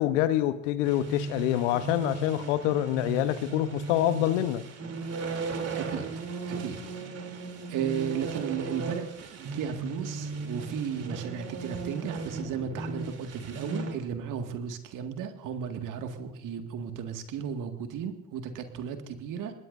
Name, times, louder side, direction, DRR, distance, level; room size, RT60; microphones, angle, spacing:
voice 1, 0.0-4.6, left 13 dB, 75° left, 12 dB, 1.1 m, -26 dB
sound 1, 0.8-13.9, right 4 dB, 40° right, 3.4 m, -36 dB
voice 2, 5.7-6.0 6.5-6.7 7.7-19.5, right 7 dB, 60° right, 5 dB, 2.1 m, -34 dB
26.5 x 20.0 x 2.7 m, 0.84 s
hypercardioid pair, 65°, 36 cm